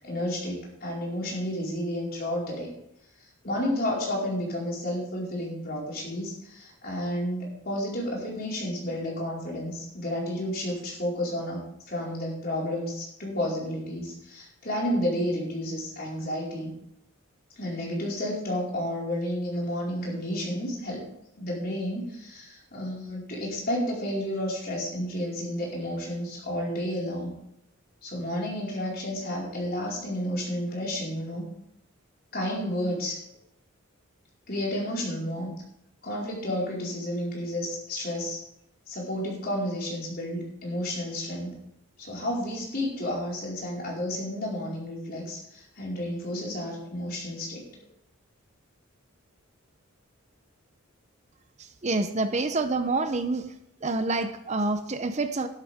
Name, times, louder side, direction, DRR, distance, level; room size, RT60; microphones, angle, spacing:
voice 1, 0.0-2.7 3.4-16.7 17.6-21.0 21.3-27.3 28.0-31.5 32.3-33.2 34.5-35.6 36.0-38.4 38.9-41.6 42.0-47.7, left 1 dB, 45° left, -3 dB, 4.7 m, -31 dB
voice 2, 51.6-53.5 53.8-55.5, right 3 dB, 30° right, 9 dB, 0.6 m, -27 dB
12.5 x 12.5 x 3.6 m, 0.78 s
head